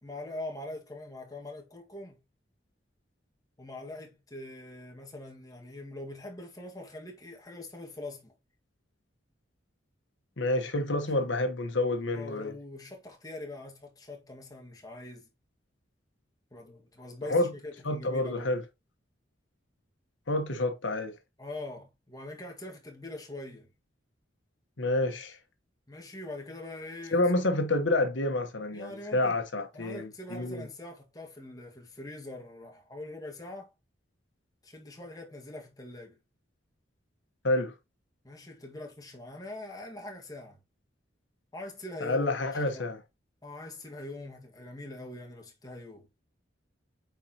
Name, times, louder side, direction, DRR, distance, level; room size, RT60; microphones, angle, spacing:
voice 1, 0.0-2.2 3.6-8.3 11.1-11.3 12.1-15.3 16.5-18.6 21.4-23.7 25.9-27.2 28.7-29.4 29.7-33.7 34.6-36.2 38.2-40.6 41.5-42.9 43.4-46.1, left 2 dB, 20° left, 1.7 m, -43 dB
voice 2, 10.4-12.5 17.3-17.5 17.8-18.6 20.3-21.1 24.8-25.4 27.1-30.7 37.4-37.7 42.0-43.0, left 2 dB, 80° left, 1.2 m, -28 dB
8.2 x 4.6 x 2.9 m
head